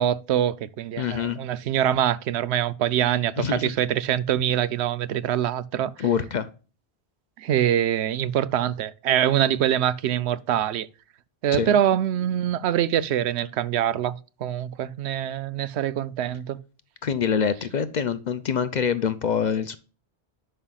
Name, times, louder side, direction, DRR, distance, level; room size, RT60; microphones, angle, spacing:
voice 1, 0.0-6.1 7.4-10.9 11.4-16.6, right 10 dB, 85° right, 0.8 m, -24 dB
voice 2, 1.0-1.4 3.4-3.7 6.0-6.5 11.5-11.7 17.0-19.8, left 7 dB, 50° left, 0.6 m, -25 dB
11.0 x 5.5 x 2.3 m
omnidirectional pair, 1.1 m